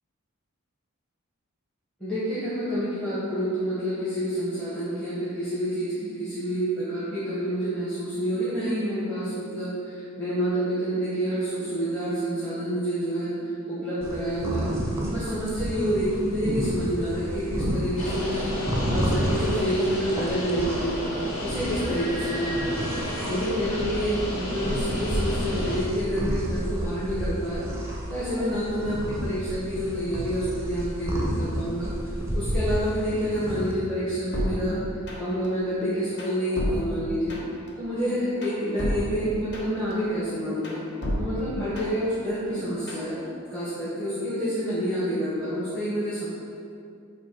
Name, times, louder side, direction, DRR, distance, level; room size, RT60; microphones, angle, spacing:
voice 1, 2.0-14.7 15.1-21.0 21.4-22.9 23.2-27.6 28.1-31.9 32.3-34.8 35.2-37.4 37.8-40.8 41.2-43.2 43.5-46.3, equal, 5° left, -12 dB, 1.2 m, -28 dB
sound 1, 14.0-33.7, equal, 10° right, 0.7 m, -31 dB
sound 2, 18.0-25.8, left 1 dB, 85° left, 1.5 m, -32 dB
sound 3, 34.3-35.5 35.8-37.7 38.0-39.9 40.3-42.1 42.5-43.1, equal, 50° left, 0.9 m, -32 dB
7.9 x 2.7 x 4.6 m, 2.5 s
head